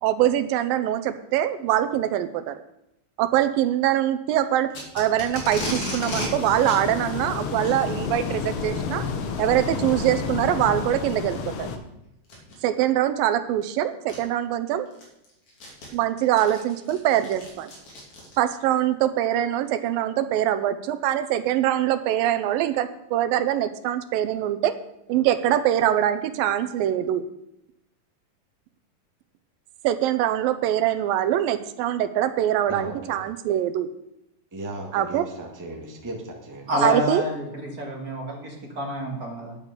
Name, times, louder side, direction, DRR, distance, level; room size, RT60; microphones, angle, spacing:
voice 1, 0.0-2.3 3.2-4.7 5.0-9.0 9.4-11.7 12.6-14.9 15.9-17.7 18.4-24.7 25.1-27.2 29.8-33.9 34.9-35.3 36.8-37.2, right 12 dB, 90° right, 11 dB, 2.5 m, -23 dB
Packing tape duct tape, 4.7-6.3 6.6-6.8 7.5-7.8 8.9-9.2 9.9-10.0 10.6-10.7 12.2-12.5 13.6-13.7 14.1-14.2 14.7-18.6, left 1 dB, 55° left, 4.0 m, -34 dB
sound 1, 6.0-11.8, left 5 dB, 80° left, 1.2 m, -30 dB
voice 2, 32.7-33.2 34.5-36.9, right 1 dB, 10° right, 0 dB, 0.8 m, -37 dB
voice 3, 36.7-39.6, equal, 40° right, 0 dB, 1.5 m, -28 dB
9.9 x 8.4 x 6.6 m, 0.84 s
omnidirectional pair, 4.0 m